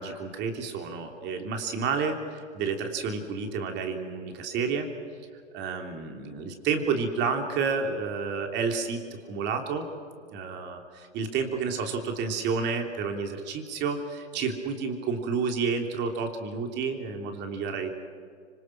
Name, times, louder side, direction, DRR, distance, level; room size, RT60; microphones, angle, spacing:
voice 1, 0.0-4.9 5.5-9.0 9.3-9.9 10.3-17.9, right 5 dB, 30° right, 4 dB, 3.3 m, -30 dB
25.5 x 25.5 x 6.1 m, 2.2 s
hypercardioid pair, 125°, 35 cm